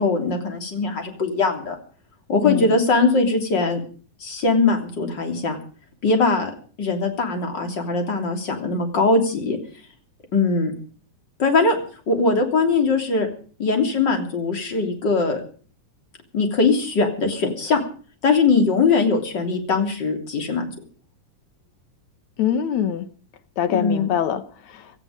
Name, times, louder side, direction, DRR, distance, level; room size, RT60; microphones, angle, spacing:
voice 1, 0.0-1.8 2.3-3.8 4.2-5.6 6.0-6.5 6.8-9.6 10.3-10.7 11.4-11.8 12.1-13.3 13.6-15.4 16.3-17.8 18.2-20.6 23.7-24.1, left 3 dB, 35° left, 4 dB, 3.6 m, -21 dB
voice 2, 2.4-2.8 22.4-23.1 23.6-25.0, left 9 dB, 65° left, 11 dB, 2.4 m, -24 dB
18.0 x 14.0 x 5.2 m, 0.41 s
omnidirectional pair, 3.7 m